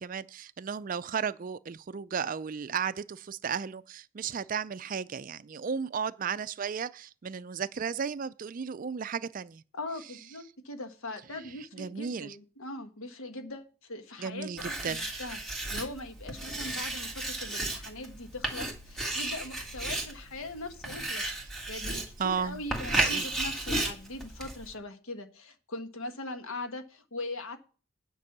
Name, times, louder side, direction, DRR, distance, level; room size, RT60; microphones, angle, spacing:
voice 1, 0.0-9.6 11.3-11.4 11.7-12.4 14.2-15.1 22.2-23.3, right 6 dB, 40° right, 0.4 m, -34 dB
voice 2, 9.7-21.2 21.7-27.6, left 2 dB, 85° left, 1.3 m, -41 dB
Writing, 14.6-24.7, right 1 dB, ahead, 1.7 m, -34 dB
9.5 x 5.3 x 7.2 m
head